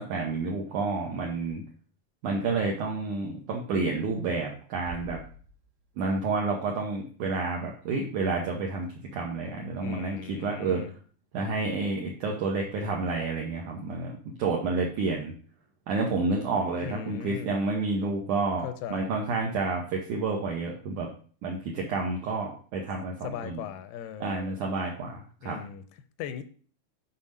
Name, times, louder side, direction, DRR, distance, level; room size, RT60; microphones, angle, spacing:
voice 1, 0.0-1.6 2.2-5.2 6.0-10.8 11.3-15.3 15.9-18.7 18.9-21.1 21.4-23.7 24.2-25.6, right 3 dB, 70° right, -1 dB, 2.1 m, -30 dB
Bass drum, 4.9-6.3, right 4 dB, 85° right, 2.6 m, -45 dB
voice 2, 9.8-10.9 16.8-17.5 18.6-19.1 23.2-24.6 25.4-25.8 26.2-26.4, left 8 dB, 90° left, 10 dB, 2.6 m, -38 dB
7.4 x 4.2 x 5.3 m, 0.44 s
omnidirectional pair, 4.5 m